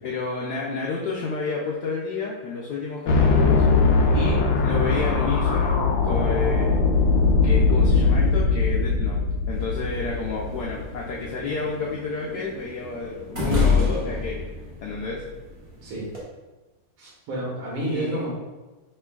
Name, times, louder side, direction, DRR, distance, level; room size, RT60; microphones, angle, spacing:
voice 1, 0.0-3.6 4.1-6.8 7.4-14.4 14.8-15.3 17.8-18.3, left 4 dB, 90° left, -3 dB, 0.9 m, -30 dB
sound 1, 3.1-11.1, left 4 dB, 75° left, 1.2 m, -20 dB
sound 2, 9.5-16.2, left 4 dB, 55° right, 0.3 m, -29 dB
voice 2, 17.0-18.3, right 1 dB, 80° right, -5 dB, 2.0 m, -30 dB
5.1 x 3.2 x 2.3 m, 1.2 s
omnidirectional pair, 2.4 m